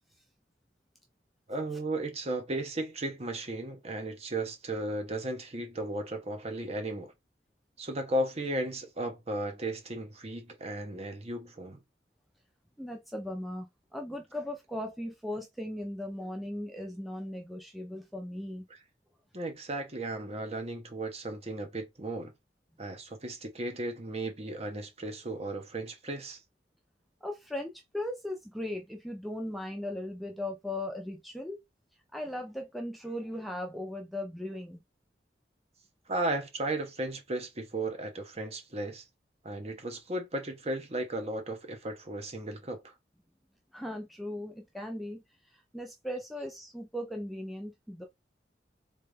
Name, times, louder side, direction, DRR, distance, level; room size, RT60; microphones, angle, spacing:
voice 1, 1.5-7.1 7.8-11.8 18.7-18.8 19.3-22.3 22.8-26.4 36.1-39.0 39.4-42.9, right 1 dB, 35° right, 1.0 m, -35 dB
voice 2, 12.8-18.7 27.2-31.6 32.1-34.8 43.7-45.2 45.7-48.0, left 1 dB, ahead, 0.6 m, -38 dB
3.8 x 3.3 x 3.4 m
head